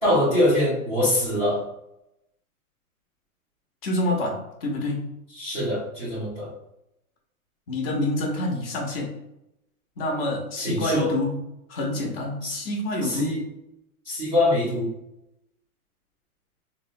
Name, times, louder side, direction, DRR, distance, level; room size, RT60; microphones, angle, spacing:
voice 1, 0.0-1.6 5.3-6.5 10.6-11.1 12.4-12.6 13.0-13.4 14.0-14.9, left 1 dB, 5° left, -19 dB, 0.3 m, -23 dB
voice 2, 3.8-5.1 7.7-9.2 10.0-11.4 11.7-13.4, left 1 dB, 40° left, 0 dB, 0.9 m, -27 dB
3.6 x 2.1 x 2.6 m, 0.85 s
hypercardioid pair, 145°, 44 cm